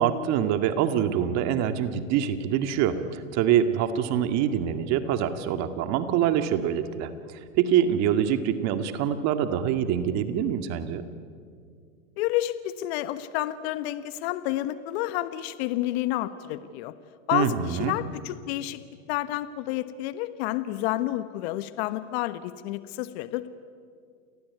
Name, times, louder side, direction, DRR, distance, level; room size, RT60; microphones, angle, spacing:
voice 1, 0.0-7.1 7.6-11.1 17.3-17.9, right 9 dB, 45° right, 9 dB, 2.0 m, -25 dB
voice 2, 12.2-16.9 17.3-18.8 19.1-23.5, left 15 dB, 55° left, 13 dB, 1.3 m, -30 dB
29.0 x 19.0 x 9.6 m, 2.2 s
hypercardioid pair, 125°, 39 cm